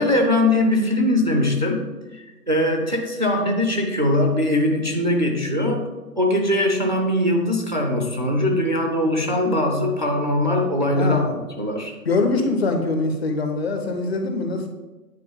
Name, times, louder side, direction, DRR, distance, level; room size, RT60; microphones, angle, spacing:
voice 1, 0.0-1.8 2.1-5.9 6.2-11.3 11.6-11.9, left 1 dB, 30° right, 1 dB, 0.4 m, -21 dB
voice 2, 11.0-11.3 12.1-14.7, left 3 dB, 40° left, 5 dB, 0.8 m, -23 dB
9.3 x 3.9 x 3.5 m, 1.2 s
figure-of-eight pair, 130°, 49 cm